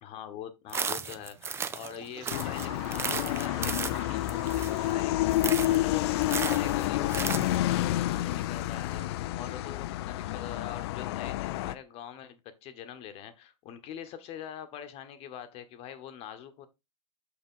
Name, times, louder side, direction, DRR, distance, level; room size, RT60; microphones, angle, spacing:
voice 1, 0.0-16.7, left 9 dB, 40° left, 1.2 m, -43 dB
sound 1, 0.7-2.0 2.2-4.9 5.3-5.8 6.2-7.6, right 6 dB, 15° right, 0.5 m, -34 dB
Toilet flush, 1.8-10.4, right 9 dB, 45° right, 1.1 m, -51 dB
sound 2, 2.3-11.7, left 15 dB, 55° left, 0.5 m, -29 dB
6.1 x 5.8 x 3.7 m
hypercardioid pair, 115°, 16 cm